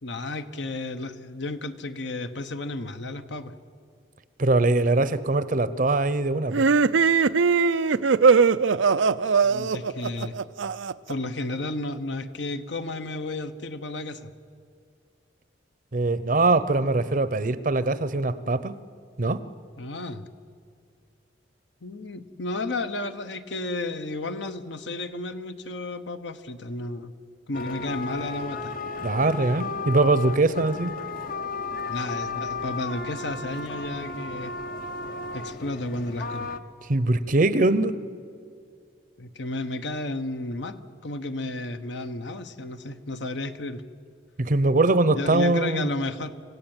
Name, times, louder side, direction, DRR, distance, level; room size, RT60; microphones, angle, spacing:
voice 1, 0.0-3.5 9.4-10.3 11.1-14.3 19.8-20.3 21.8-27.1 27.5-28.7 31.9-34.5 35.3-36.5 39.2-43.8 45.1-46.3, left 2 dB, 70° left, 9 dB, 1.1 m, -32 dB
voice 2, 4.4-6.6 15.9-18.7 19.2-19.4 29.0-30.9 36.9-37.9 44.4-45.9, right 2 dB, 45° right, 15 dB, 0.7 m, -22 dB
sound 1, 6.5-11.1, right 5 dB, 90° right, 0.5 m, -20 dB
sound 2, 27.5-36.6, left 4 dB, 50° left, 0.9 m, -34 dB
26.5 x 16.0 x 9.0 m, 2.2 s
head